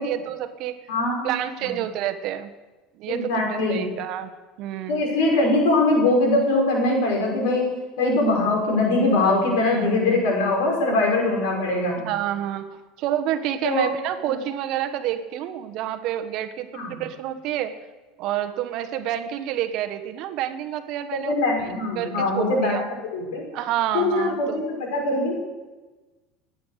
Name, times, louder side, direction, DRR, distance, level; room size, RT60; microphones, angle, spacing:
voice 1, 0.0-0.8 1.2-2.5 2.9-4.3 4.6-5.0 9.6-9.9 12.0-12.7 13.0-17.7 18.2-21.3 21.6-21.7 22.0-22.8 23.5-24.6, right 11 dB, 55° right, 8 dB, 1.3 m, -28 dB
voice 2, 0.9-1.7 3.1-3.8 4.9-12.0 13.6-13.9 14.2-14.3 16.7-17.0 21.1-22.8 23.1-23.5 23.9-25.4, left 2 dB, 90° left, 0 dB, 5.6 m, -22 dB
19.5 x 9.2 x 6.5 m, 1.2 s
cardioid pair, 140°, 0 cm